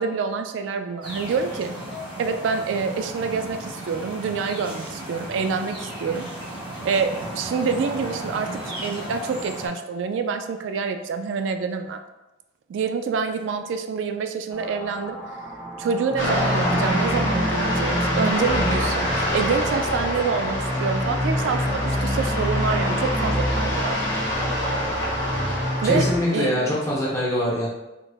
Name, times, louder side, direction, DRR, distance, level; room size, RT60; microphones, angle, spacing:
voice 1, 0.0-1.7 2.2-6.3 6.8-12.0 12.7-15.2 15.8-24.1 25.8-26.0 26.3-26.5, right 5 dB, 85° right, 7 dB, 0.3 m, -26 dB
sound 1, 1.0-9.7, right 1 dB, 25° right, 0.9 m, -35 dB
sound 2, 14.5-26.2, equal, 10° right, 0.5 m, -27 dB
sound 3, 16.2-26.5, equal, 75° left, 1.0 m, -27 dB
voice 2, 25.8-27.7, left 1 dB, 15° left, -5 dB, 0.9 m, -23 dB
3.9 x 2.0 x 3.4 m, 1.0 s
head